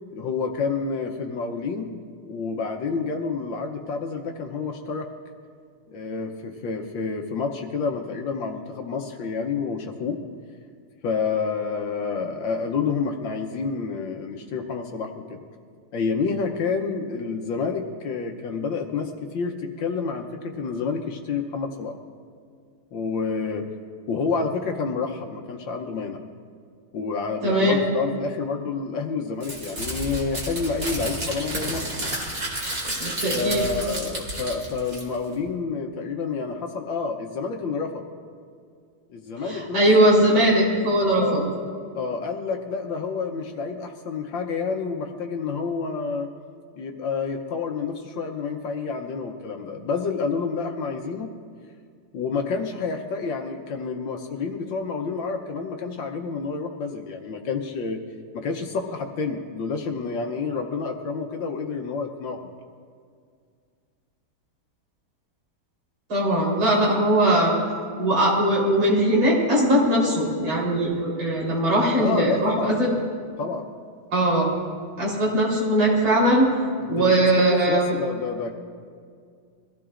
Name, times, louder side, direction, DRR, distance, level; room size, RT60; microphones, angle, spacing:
voice 1, 0.1-5.1 5.9-10.2 11.0-15.4 15.9-21.9 22.9-23.7 24.1-26.2 26.9-32.2 33.3-38.1 39.1-40.1 41.1-41.5 41.9-46.3 46.8-51.3 52.1-58.0 58.3-62.5 72.0-72.8 73.4-73.7 76.8-78.5, left 5 dB, 65° left, 3 dB, 1.4 m, -29 dB
voice 2, 27.4-27.8 33.0-33.6 39.5-41.4 66.1-67.5 68.0-72.9 74.1-74.5 75.0-76.5 76.9-77.9, right 1 dB, 65° right, -5 dB, 4.5 m, -20 dB
Crumpling crinkling, 29.4-35.3, right 1 dB, 40° right, 2.8 m, -31 dB
23.0 x 15.0 x 2.5 m, 2.1 s
omnidirectional pair, 2.4 m